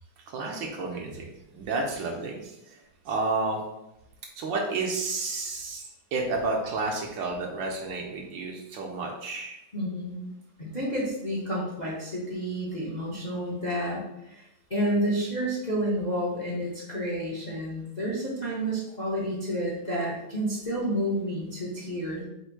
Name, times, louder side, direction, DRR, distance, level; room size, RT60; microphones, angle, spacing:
voice 1, 0.3-1.3 1.5-2.8 3.0-3.6 4.4-5.8 6.1-9.6, right 3 dB, 70° right, 0 dB, 1.3 m, -31 dB
voice 2, 9.7-10.3 10.6-22.2, equal, 45° left, -6 dB, 0.5 m, -30 dB
4.3 x 2.6 x 4.5 m, 0.88 s
omnidirectional pair, 2.2 m